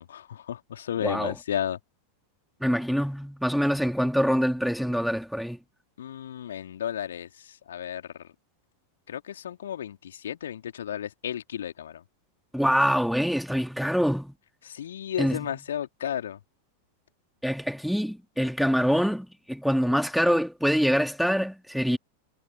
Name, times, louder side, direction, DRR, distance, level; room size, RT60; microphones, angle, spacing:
voice 1, 0.0-1.8 6.0-8.1 9.1-12.0 14.6-16.4, left 10 dB, 65° left, 3.1 m, -33 dB
voice 2, 1.0-1.3 2.6-5.6 12.5-14.3 15.2-15.5 17.4-22.0, equal, ahead, 3.7 m, -25 dB
figure-of-eight pair, 90°, 0 cm